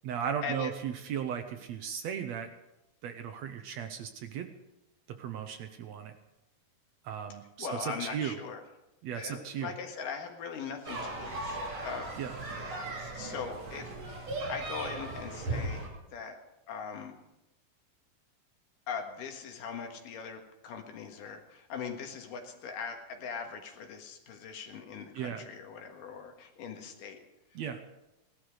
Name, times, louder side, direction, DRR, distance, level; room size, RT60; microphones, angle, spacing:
voice 1, 0.0-2.5 3.0-4.5 5.1-6.1 7.0-8.4 9.0-9.7 12.2-12.3 25.1-25.4 27.5-27.8, right 8 dB, 70° right, 7 dB, 1.8 m, -36 dB
voice 2, 7.6-8.6 9.1-12.5 13.0-16.4 16.7-17.1 18.9-27.2, left 6 dB, 80° left, 4 dB, 3.2 m, -41 dB
sound 1, 10.9-15.9, right 2 dB, 50° right, 4.0 m, -37 dB
18.0 x 12.0 x 4.9 m, 0.95 s
omnidirectional pair, 3.8 m